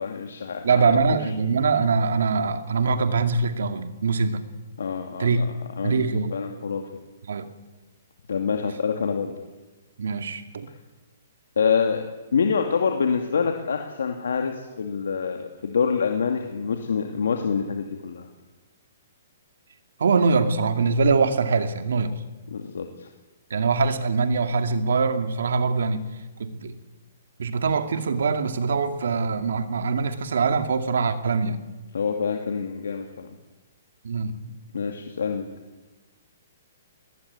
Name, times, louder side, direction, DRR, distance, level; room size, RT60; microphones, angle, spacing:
voice 1, 0.0-1.2 4.8-5.5 5.8-6.8 8.3-9.3 11.6-12.0 12.3-18.3 22.5-23.1 31.9-33.3 34.7-35.5, left 6 dB, 85° left, 4 dB, 2.4 m, -26 dB
voice 2, 0.6-4.4 5.2-5.5 5.8-6.4 7.3-7.5 10.0-10.7 20.0-22.1 23.5-26.0 26.4-26.7 27.4-31.6 34.0-34.5, right 4 dB, 75° right, 8 dB, 2.4 m, -23 dB
20.5 x 19.5 x 9.7 m, 1.2 s
hypercardioid pair, 165°, 0 cm